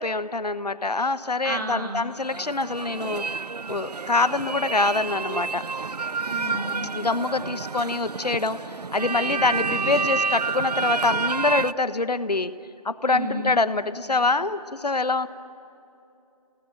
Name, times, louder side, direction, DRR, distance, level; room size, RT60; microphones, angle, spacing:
voice 1, 0.0-3.2 3.7-5.6 6.9-8.6 8.9-12.5 12.8-15.3, left 3 dB, 90° left, 13 dB, 1.2 m, -25 dB
voice 2, 1.4-2.1 6.3-7.0 13.1-13.5, right 2 dB, 30° right, 3 dB, 2.1 m, -32 dB
sound 1, 2.1-11.7, right 4 dB, 80° right, 0.6 m, -29 dB
28.0 x 18.5 x 9.1 m, 2.7 s
figure-of-eight pair, 170°, 20 cm